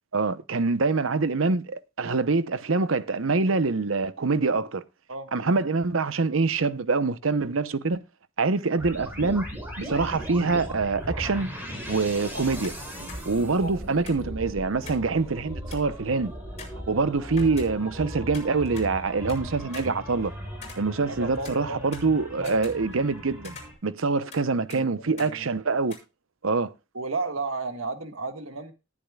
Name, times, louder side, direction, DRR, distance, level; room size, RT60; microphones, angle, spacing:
voice 1, 0.1-4.8 5.3-8.0 8.4-9.5 9.8-11.5 11.9-12.8 13.3-16.3 16.9-20.3 20.8-23.6 23.8-25.9 26.4-26.7, right 4 dB, 70° right, 0.8 m, -25 dB
sound 1, 8.8-23.7, equal, 10° right, 6.0 m, -38 dB
sound 2, 12.6-12.8 13.1-13.2 14.1-15.1 15.4-15.5 15.7-16.0 16.6-18.0 18.3-19.4 19.7-21.2 21.4-23.2 23.4-24.4 24.7-24.8 25.2-25.3 25.9-26.0, left 5 dB, 35° left, 6.0 m, -45 dB
voice 2, 13.6-13.9 21.1-21.8 22.4-22.6 24.2-24.3 24.7-25.5 26.9-28.7, right 3 dB, 90° right, 1.6 m, -33 dB
19.0 x 8.5 x 2.3 m
head